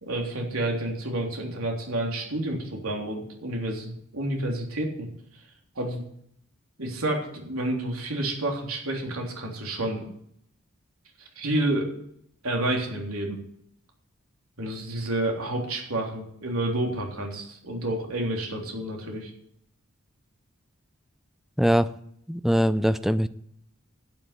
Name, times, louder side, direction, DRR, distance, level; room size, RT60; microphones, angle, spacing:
voice 1, 0.0-5.1 5.3-5.4 5.8-6.0 6.8-10.1 11.4-11.9 12.4-13.4 14.6-19.3, right 1 dB, 75° right, 1 dB, 3.5 m, -29 dB
voice 2, 21.6-21.9 22.3-23.3, equal, ahead, 13 dB, 0.5 m, -22 dB
11.5 x 7.8 x 8.1 m, 0.70 s
head